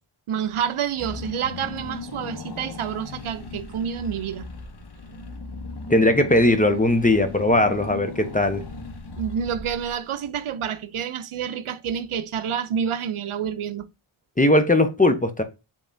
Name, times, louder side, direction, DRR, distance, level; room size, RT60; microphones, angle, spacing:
voice 1, 0.3-4.5 9.2-13.9, right 8 dB, 75° right, 0.6 m, -28 dB
Car / Engine, 1.0-10.2, left 3 dB, 50° left, 1.0 m, -37 dB
voice 2, 5.9-8.6 14.4-15.4, left 1 dB, 15° left, 0.7 m, -19 dB
5.1 x 3.6 x 2.6 m
wide cardioid pair, 65°, 49 cm